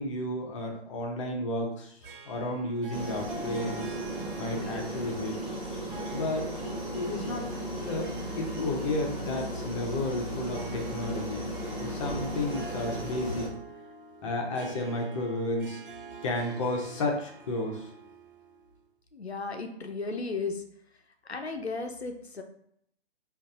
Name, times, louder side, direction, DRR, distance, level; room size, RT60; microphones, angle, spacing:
voice 1, 0.0-2.0 2.3-4.0 4.4-5.4 6.1-6.5 6.9-7.5 7.8-8.1 8.4-11.5 11.8-13.5 14.2-15.8 16.2-17.9, left 1 dB, 30° left, 1 dB, 0.8 m, -32 dB
Harp, 2.0-18.8, right 4 dB, 55° right, 0.6 m, -46 dB
sound 1, 2.9-13.5, equal, ahead, 0.6 m, -36 dB
voice 2, 19.1-20.6 21.3-22.4, left 4 dB, 90° left, 4 dB, 0.6 m, -35 dB
5.2 x 2.6 x 2.5 m, 0.70 s
figure-of-eight pair, 125°, 31 cm